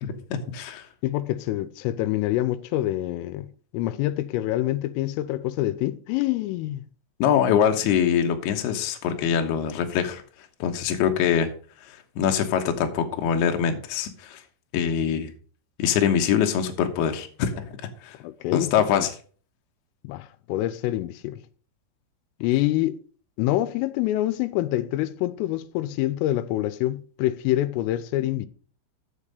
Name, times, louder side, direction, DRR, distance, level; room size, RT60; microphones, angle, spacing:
voice 1, 0.0-0.9 7.2-10.2 10.6-11.5 11.9-14.4 14.7-15.3 15.8-17.7 18.0-18.2 18.5-19.1, left 8 dB, 70° left, 2.7 m, -24 dB
voice 2, 1.0-6.9 18.2-19.1 20.0-21.4 22.4-23.0 23.4-28.5, left 15 dB, 90° left, 3.3 m, -26 dB
7.4 x 7.3 x 6.5 m
omnidirectional pair, 5.7 m